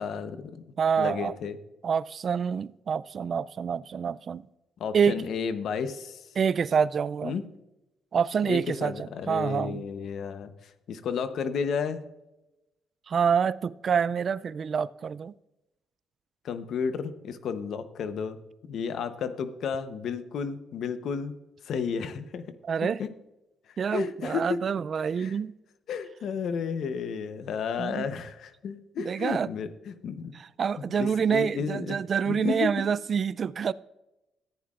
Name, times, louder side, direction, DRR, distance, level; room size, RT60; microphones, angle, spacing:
voice 1, 0.0-1.6 4.8-6.3 7.2-7.4 8.5-12.0 16.4-18.4 18.7-21.3 21.6-22.4 23.0-23.1 23.7-24.6 25.2-25.3 25.9-30.3 30.8-32.0 32.3-32.8, left 6 dB, 70° left, 0.8 m, -32 dB
voice 2, 0.8-1.3 1.8-4.5 4.9-5.2 6.4-7.3 8.1-9.8 13.1-15.3 22.6-23.0 23.8-25.5 27.8-28.1 29.0-29.5 30.3-33.7, right 6 dB, 50° right, 0.3 m, -27 dB
14.5 x 9.4 x 2.4 m
cardioid pair, 90°, 0 cm